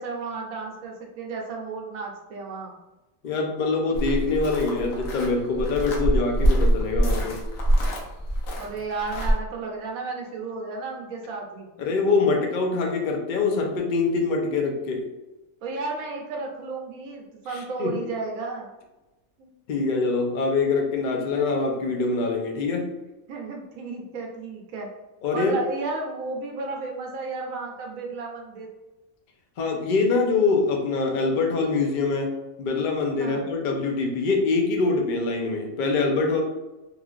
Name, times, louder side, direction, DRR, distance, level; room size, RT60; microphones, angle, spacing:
voice 1, 0.0-2.7 8.6-11.7 15.6-18.7 19.4-19.5 23.3-24.9 25.3-28.7 33.2-33.4, right 3 dB, 85° right, 0 dB, 1.0 m, -33 dB
voice 2, 3.2-7.4 11.8-15.0 17.5-17.9 19.7-22.9 25.2-25.6 29.6-32.3 32.6-36.4, left 3 dB, 60° left, 1 dB, 0.5 m, -24 dB
sound 1, 3.9-9.3, right 1 dB, 75° left, 1.1 m, -24 dB
3.1 x 2.4 x 2.3 m, 1.0 s
omnidirectional pair, 1.4 m